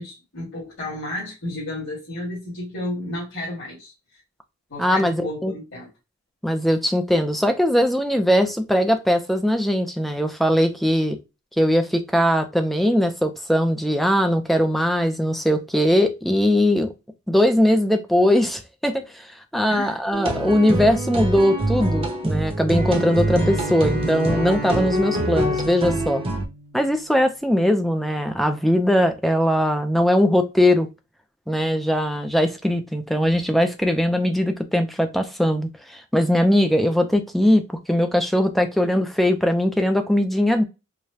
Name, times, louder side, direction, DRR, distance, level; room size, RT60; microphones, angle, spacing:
voice 1, 0.0-3.9 4.7-5.9 19.7-20.0, left 1 dB, 60° left, 2.2 m, -32 dB
voice 2, 4.8-5.5 6.4-11.2 11.6-16.9 17.3-19.3 19.5-26.2 26.7-30.9 31.5-40.6, equal, ahead, 0.5 m, -20 dB
sound 1, 20.1-26.5, right 1 dB, 25° right, 0.8 m, -25 dB
Bowed string instrument, 22.7-27.1, right 1 dB, 45° right, 1.0 m, -33 dB
4.9 x 2.2 x 2.8 m
head